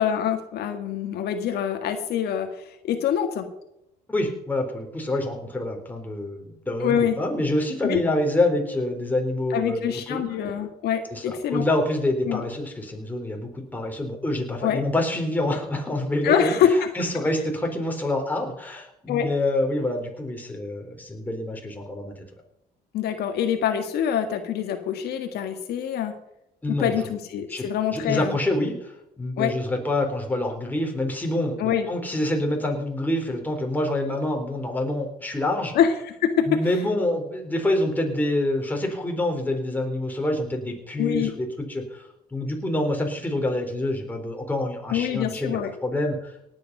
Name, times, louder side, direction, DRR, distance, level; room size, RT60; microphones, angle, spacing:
voice 1, 0.0-3.5 6.8-7.2 7.8-8.0 9.5-11.6 12.2-12.4 14.6-14.8 16.2-16.9 19.1-19.3 22.9-26.1 26.7-28.4 29.4-29.6 31.6-31.9 35.7-36.6 41.0-41.3 44.9-45.7, left 8 dB, 70° left, 6 dB, 1.6 m, -25 dB
voice 2, 4.1-10.2 11.1-16.5 16.9-22.1 26.6-26.9 27.5-27.7 27.9-35.7 36.5-46.3, left 1 dB, 10° left, 1 dB, 3.9 m, -26 dB
18.5 x 8.9 x 5.5 m, 0.82 s
cardioid pair, 110°, 17 cm